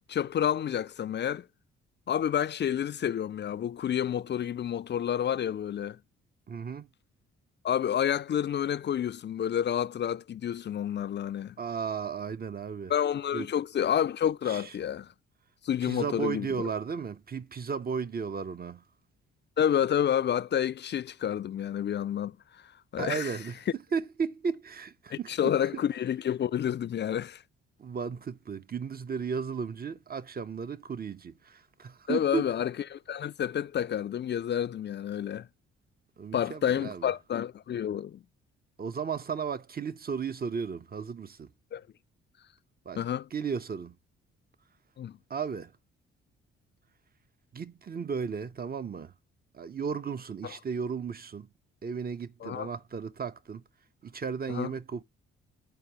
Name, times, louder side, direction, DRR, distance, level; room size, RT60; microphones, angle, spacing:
voice 1, 0.1-1.5 2.1-6.0 7.6-11.6 12.9-15.1 15.6-16.7 19.6-23.4 25.1-27.4 32.1-35.5 36.3-38.2 41.7-41.8 43.0-43.3 45.0-45.2 50.4-50.5 52.4-52.7 54.5-54.7, left 9 dB, 40° left, 0.4 m, -29 dB
voice 2, 6.5-6.9 11.6-12.9 13.3-13.5 14.5-14.6 15.8-18.8 23.0-23.6 23.9-25.5 27.8-32.5 36.2-37.1 38.8-41.5 42.9-43.0 43.3-44.0 45.3-45.7 47.5-49.1 49.5-51.5 51.8-53.6 54.0-55.0, right 6 dB, 30° right, 0.7 m, -34 dB
12.5 x 4.6 x 2.8 m
hypercardioid pair, 45°, 29 cm